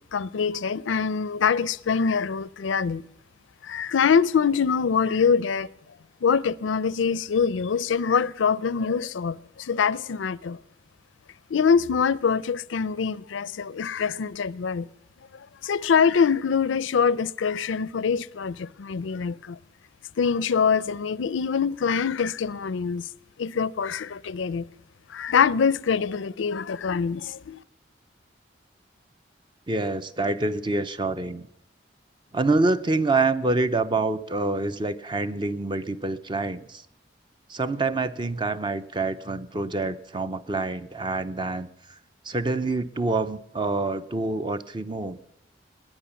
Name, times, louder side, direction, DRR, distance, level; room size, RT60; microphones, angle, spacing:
voice 1, 0.1-3.0 3.6-5.7 6.2-10.6 11.5-14.9 15.6-19.6 20.2-23.0 23.4-24.7 25.1-27.6, left 6 dB, 85° left, 0.5 m, -24 dB
voice 2, 29.7-31.5 32.3-36.8 37.5-41.7 42.2-45.2, right 3 dB, 25° right, 0.6 m, -26 dB
18.5 x 9.9 x 7.0 m
head